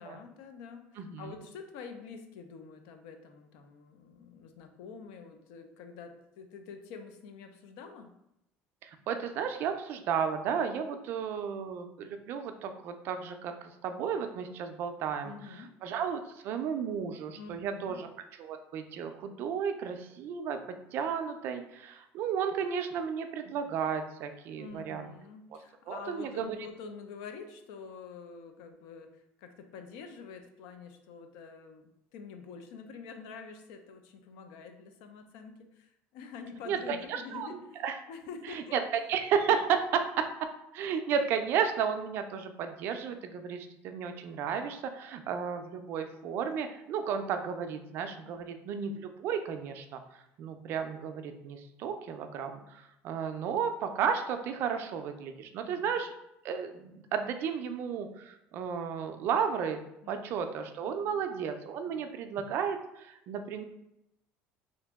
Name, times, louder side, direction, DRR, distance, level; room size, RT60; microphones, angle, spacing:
voice 1, 0.0-8.1 15.2-15.8 17.3-18.0 24.6-38.8 48.2-48.4 55.6-55.9 60.0-60.4 60.8-61.2 61.8-62.1, left 5 dB, 85° left, 6 dB, 0.4 m, -47 dB
voice 2, 1.0-1.4 8.8-18.1 18.4-20.6 20.9-25.1 25.9-26.6 36.7-38.0 38.5-38.8 39.1-40.3 40.7-56.1 56.4-59.8 60.1-63.6, right 7 dB, 50° right, 7 dB, 0.3 m, -33 dB
2.8 x 2.5 x 3.4 m, 0.86 s
cardioid pair, 150°, 5 cm